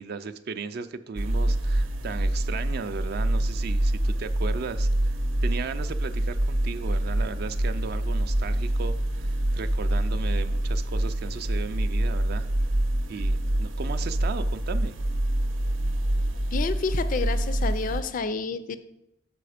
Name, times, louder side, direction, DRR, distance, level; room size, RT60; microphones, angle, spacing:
voice 1, 0.0-5.2 5.4-12.5 13.1-15.0, right 5 dB, 55° right, 10 dB, 0.3 m, -36 dB
sound 1, 1.2-18.0, right 1 dB, 80° right, 0.8 m, -26 dB
voice 2, 16.5-18.8, left 4 dB, 45° left, 12 dB, 0.3 m, -29 dB
6.8 x 4.7 x 4.9 m, 0.85 s
head